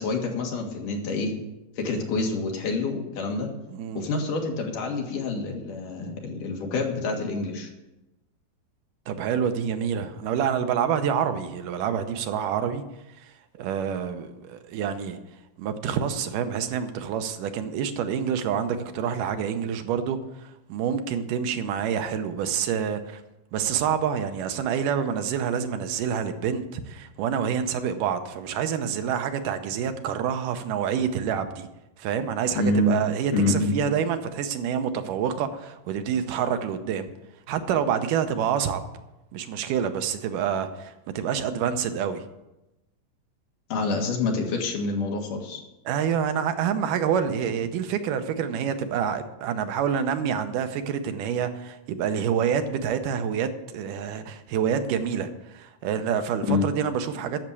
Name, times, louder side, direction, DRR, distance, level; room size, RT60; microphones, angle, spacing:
voice 1, 0.0-1.3 1.8-3.5 3.9-7.7 32.5-32.9 33.3-33.8 43.7-45.6 56.5-56.7, left 3 dB, 70° left, 1 dB, 3.3 m, -27 dB
voice 2, 3.7-4.0 9.1-12.8 13.2-13.3 13.6-15.2 15.6-23.2 23.5-31.7 32.0-37.1 37.5-38.8 39.3-42.2 45.9-57.4, right 8 dB, 80° right, 8 dB, 2.4 m, -27 dB
10.5 x 7.3 x 8.3 m, 0.97 s
omnidirectional pair, 3.8 m